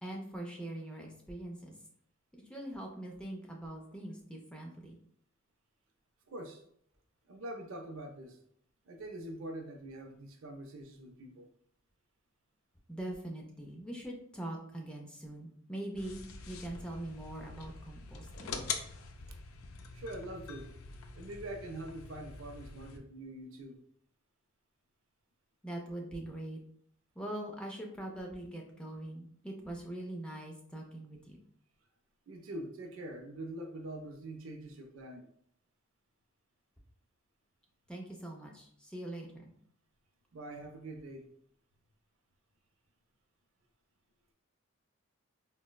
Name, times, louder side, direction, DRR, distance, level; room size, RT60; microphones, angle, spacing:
voice 1, 0.0-1.7 2.3-5.0 12.9-16.2 16.5-18.6 25.6-26.6 27.2-31.4 37.9-39.5, right 1 dB, 5° left, 0 dB, 0.4 m, -42 dB
voice 2, 6.3-6.6 7.3-8.4 8.9-11.5 19.3-19.4 19.9-20.7 21.1-23.8 32.3-35.3 40.3-41.3, right 1 dB, 65° right, 5 dB, 0.4 m, -44 dB
sound 1, 16.0-23.0, left 5 dB, 85° left, 0.4 m, -44 dB
3.9 x 2.1 x 2.2 m, 0.66 s
head